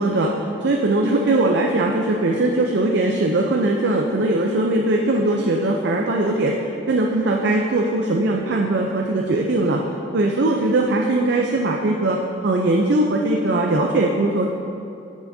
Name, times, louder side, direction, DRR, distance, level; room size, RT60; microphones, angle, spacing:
voice 1, 0.0-9.8 10.1-14.5, right 2 dB, 65° right, 0 dB, 0.5 m, -20 dB
9.3 x 7.2 x 2.7 m, 2.6 s
head